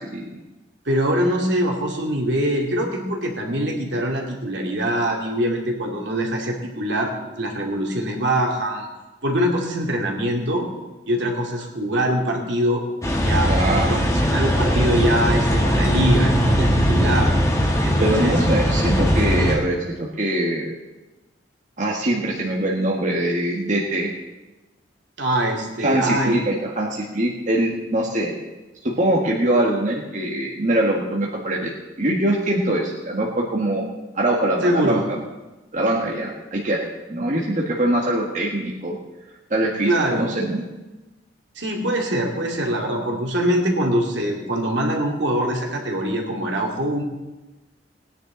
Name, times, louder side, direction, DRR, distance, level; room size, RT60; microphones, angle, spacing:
voice 1, 0.9-8.9 9.2-10.7 11.1-12.8 13.1-13.5 13.9-17.3 17.8-18.4 25.2-26.4 34.6-35.1 39.8-40.4 41.6-47.0, equal, 70° right, 0 dB, 2.6 m, -23 dB
sound 1, 13.0-19.6, equal, 15° left, 1.8 m, -19 dB
voice 2, 13.4-14.0 18.0-20.7 21.8-24.1 25.8-28.3 28.8-31.7 32.0-33.8 34.1-35.0 35.7-39.0 39.5-40.6, right 1 dB, 40° right, -3 dB, 1.6 m, -23 dB
19.5 x 10.0 x 3.9 m, 1.1 s
head